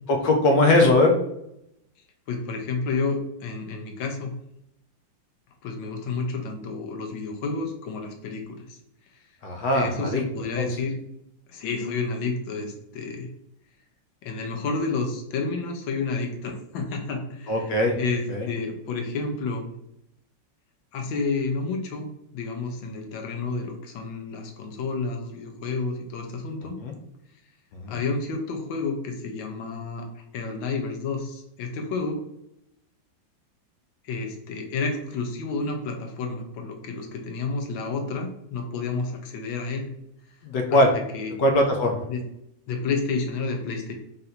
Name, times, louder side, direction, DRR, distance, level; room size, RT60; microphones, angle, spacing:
voice 1, 0.1-1.1 9.4-10.2 10.6-10.7 17.5-18.0 18.3-18.5 26.8-26.9 27.7-28.0 40.4-40.9 41.4-42.0, left 1 dB, 70° left, 2 dB, 1.2 m, -20 dB
voice 2, 2.3-4.3 5.6-8.8 9.7-10.9 11.5-13.3 14.2-19.7 20.9-26.8 27.9-30.1 30.3-32.2 34.0-39.9 40.7-40.8 41.1-41.4 42.1-42.2 42.7-43.9, left 4 dB, 90° left, 3 dB, 1.5 m, -30 dB
3.9 x 2.6 x 4.2 m, 0.78 s
omnidirectional pair, 2.1 m